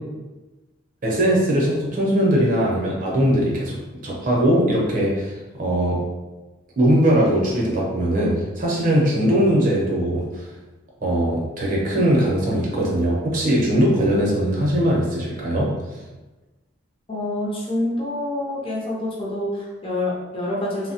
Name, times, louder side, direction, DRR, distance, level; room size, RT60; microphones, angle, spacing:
voice 1, 1.0-6.0 6.8-10.4 11.0-15.7, right 1 dB, 40° right, -3 dB, 0.6 m, -20 dB
voice 2, 17.1-20.9, left 1 dB, 25° left, -5 dB, 0.6 m, -27 dB
3.0 x 2.0 x 2.8 m, 1.1 s
head